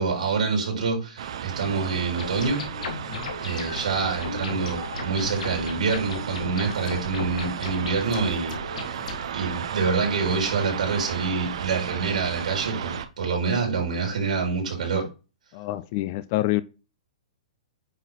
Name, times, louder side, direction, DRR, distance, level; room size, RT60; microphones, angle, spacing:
voice 1, 0.0-2.6 3.4-9.0 9.3-15.1, right 4 dB, 85° right, 4.2 m, -26 dB
sound 1, 1.2-13.1, right 8 dB, 50° right, 0.8 m, -34 dB
sound 2, 2.2-9.2, left 4 dB, 75° left, 2.1 m, -36 dB
voice 2, 15.5-16.6, left 17 dB, 25° left, 0.3 m, -28 dB
9.1 x 4.4 x 4.0 m
hypercardioid pair, 180°, 4 cm